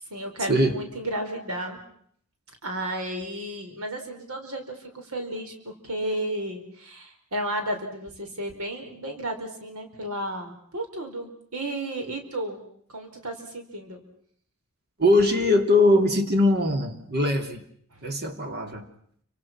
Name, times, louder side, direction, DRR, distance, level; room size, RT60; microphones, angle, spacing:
voice 1, 0.1-1.8 2.6-12.6 12.9-14.0 17.9-18.0, right 1 dB, 80° right, 4 dB, 4.8 m, -33 dB
voice 2, 15.0-17.6 18.0-18.9, left 1 dB, 50° right, 6 dB, 3.2 m, -21 dB
29.5 x 25.5 x 6.1 m, 0.64 s
head